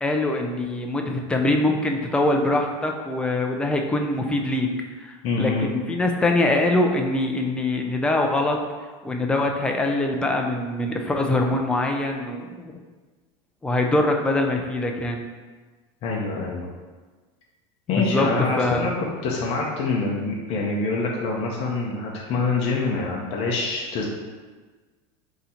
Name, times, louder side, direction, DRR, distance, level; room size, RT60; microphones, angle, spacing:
voice 1, 0.0-4.7 5.0-8.6 9.0-12.7 13.6-15.2 17.9-18.3 18.5-18.9, left 2 dB, 5° left, 2 dB, 0.3 m, -23 dB
voice 2, 5.2-5.7 16.0-16.7 17.9-18.9 19.2-24.1, left 3 dB, 40° left, -2 dB, 0.6 m, -25 dB
3.8 x 2.8 x 4.2 m, 1.4 s
supercardioid pair, 150°, 15 cm